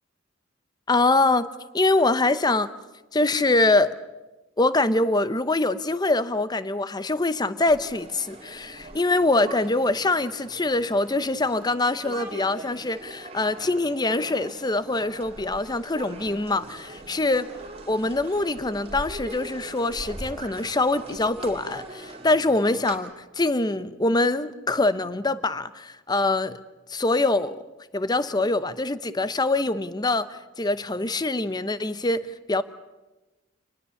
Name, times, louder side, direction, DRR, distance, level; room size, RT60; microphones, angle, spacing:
voice 1, 0.9-1.5 1.7-2.7 3.1-4.0 4.6-17.5 17.9-26.6 26.9-27.6 27.9-32.6, left 2 dB, 20° left, 0.8 m, -24 dB
sound 1, 7.7-22.9, right 2 dB, 30° right, 2.9 m, -41 dB
26.5 x 20.0 x 7.1 m
head